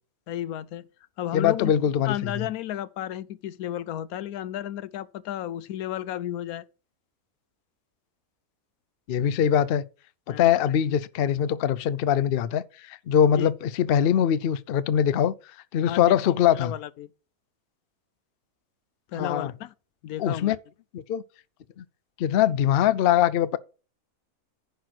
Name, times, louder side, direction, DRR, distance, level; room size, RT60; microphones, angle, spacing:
voice 1, 0.3-0.9 1.2-1.7 2.0-6.7 10.3-10.6 13.3-13.5 15.8-17.1 19.1-19.7 20.0-20.6, left 12 dB, 90° left, 1.1 m, -33 dB
voice 2, 1.3-2.5 9.1-9.8 10.3-15.3 15.7-16.7 19.2-19.5 20.2-20.6 20.9-21.2 21.8-21.9 22.2-23.6, left 9 dB, 65° left, 0.6 m, -22 dB
10.5 x 4.7 x 6.0 m
omnidirectional pair, 1.5 m